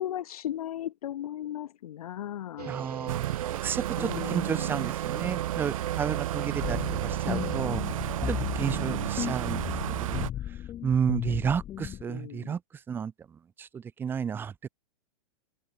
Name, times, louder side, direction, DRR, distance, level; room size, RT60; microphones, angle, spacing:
voice 1, 0.0-2.7 4.0-4.7 8.6-9.1 12.1-12.5, left 11 dB, 70° left, 2.6 m, -37 dB
sound 1, 2.6-7.6, right 10 dB, 85° right, 6.3 m, -39 dB
voice 2, 2.7-3.2 3.6-7.8 8.3-9.6 9.9-10.2 10.8-12.6 12.9-13.1 13.6-14.7, right 7 dB, 10° right, 0.9 m, -31 dB
sound 2, 3.1-10.3, right 13 dB, 60° right, 2.0 m, -32 dB
sound 3, 6.6-12.0, left 11 dB, 20° left, 1.3 m, -35 dB
supercardioid pair, 165°, 20 cm